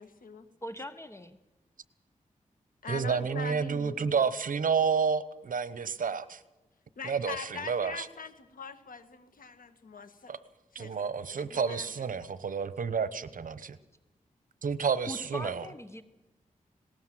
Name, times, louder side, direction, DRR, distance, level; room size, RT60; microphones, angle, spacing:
voice 1, 0.0-0.5 2.8-4.3 7.0-10.3 10.7-12.1, left 5 dB, 80° left, 10 dB, 1.7 m, -42 dB
voice 2, 0.6-1.4 3.2-3.4 15.1-16.0, equal, 20° left, 11 dB, 1.0 m, -41 dB
voice 3, 2.9-6.4 7.0-8.1 10.3-10.4 10.7-13.8 14.6-15.6, right 6 dB, 75° right, 15 dB, 1.0 m, -30 dB
19.5 x 18.5 x 7.7 m, 1.1 s
wide cardioid pair, 85°, 14 cm